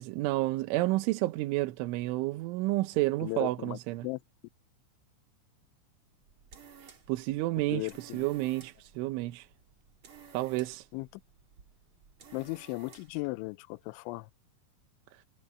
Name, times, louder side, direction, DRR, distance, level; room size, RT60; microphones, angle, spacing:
voice 1, 0.0-4.1 6.8-9.5 10.3-10.9, right 18 dB, 80° right, 3.2 m, -30 dB
voice 2, 3.2-4.2 7.7-8.3 10.9-11.1 12.3-14.3, left 24 dB, 85° left, 2.7 m, -37 dB
sound 1, 6.1-13.3, right 6 dB, 40° right, 1.8 m, -56 dB
omnidirectional pair, 5.8 m